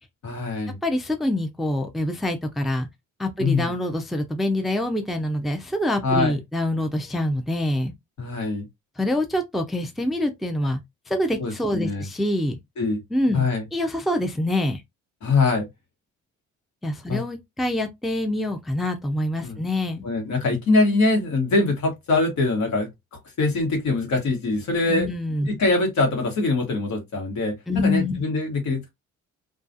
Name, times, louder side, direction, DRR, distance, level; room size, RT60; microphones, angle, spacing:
voice 1, 0.2-0.8 3.4-3.7 6.0-6.3 8.2-8.7 11.4-12.0 12.8-13.0 13.3-13.6 15.2-15.7 17.1-17.2 19.4-19.6 20.0-25.1 25.5-28.9, left 3 dB, 70° left, 1.2 m, -23 dB
voice 2, 0.8-2.9 3.2-7.9 9.0-10.8 11.1-12.6 13.1-14.8 16.8-20.0 24.9-25.5 27.7-28.2, left 1 dB, ahead, 0.4 m, -25 dB
2.3 x 2.3 x 2.6 m
cardioid pair, 90°, 30 cm